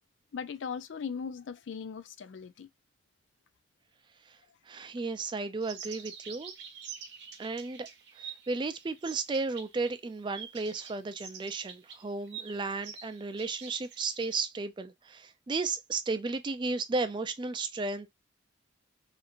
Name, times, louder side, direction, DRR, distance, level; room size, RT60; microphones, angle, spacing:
voice 1, 0.3-2.7, left 6 dB, 80° left, 0.4 m, -38 dB
voice 2, 4.7-6.5 7.4-7.9 8.2-18.1, right 3 dB, 25° right, 0.3 m, -34 dB
sound 1, 5.6-9.9 10.2-14.4, right 7 dB, 65° right, 0.8 m, -46 dB
2.9 x 2.5 x 2.4 m
head